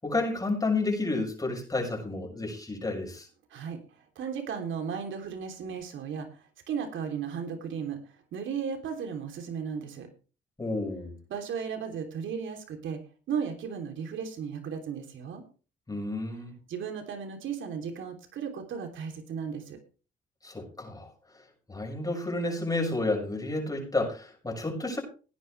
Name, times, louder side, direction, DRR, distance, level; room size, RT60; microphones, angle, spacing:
voice 1, 0.0-3.3 10.6-11.1 15.9-16.5 20.4-21.1 21.7-25.0, left 2 dB, 20° left, 0 dB, 6.5 m, -31 dB
voice 2, 4.1-6.4 6.7-8.0 8.3-10.1 11.3-13.0 13.3-15.4 16.7-19.8, right 7 dB, 75° right, 5 dB, 3.3 m, -35 dB
17.5 x 10.0 x 3.4 m, 0.36 s
cardioid pair, 90°, 20 cm